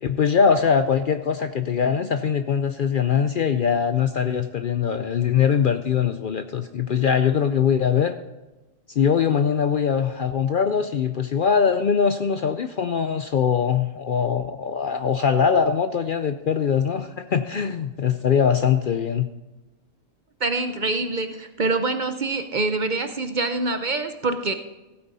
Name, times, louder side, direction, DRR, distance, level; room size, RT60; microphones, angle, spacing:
voice 1, 0.0-8.2 8.9-19.3, left 7 dB, 55° left, 9 dB, 0.6 m, -22 dB
voice 2, 20.4-24.5, right 3 dB, 45° right, 8 dB, 0.7 m, -25 dB
15.5 x 8.8 x 4.1 m, 1.1 s
omnidirectional pair, 1.3 m